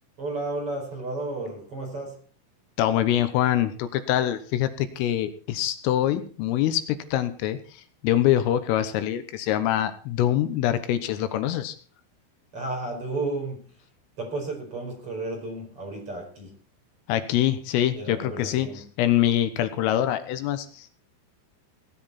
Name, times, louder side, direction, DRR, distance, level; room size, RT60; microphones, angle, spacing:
voice 1, 0.2-2.2 12.5-13.7 14.2-16.5 18.0-18.8, right 2 dB, 30° right, 5.3 m, -32 dB
voice 2, 2.8-7.6 8.0-11.8 17.1-18.7 19.0-21.0, left 12 dB, 85° left, 3.7 m, -24 dB
18.0 x 11.0 x 4.3 m
omnidirectional pair, 5.9 m